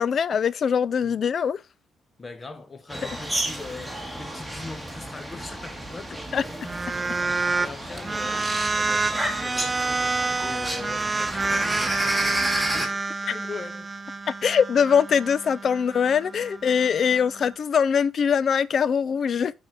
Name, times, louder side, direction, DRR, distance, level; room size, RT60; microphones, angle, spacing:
voice 1, 0.0-1.6 6.3-6.4 14.4-19.5, left 7 dB, 55° left, 0.5 m, -22 dB
voice 2, 2.2-13.9, left 3 dB, 30° left, 1.3 m, -41 dB
sound 1, 2.9-12.9, right 1 dB, 5° right, 1.8 m, -31 dB
sound 2, 6.6-7.7 8.0-17.5, right 3 dB, 25° right, 0.6 m, -28 dB
8.6 x 4.3 x 4.8 m
cardioid pair, 90°, 0 cm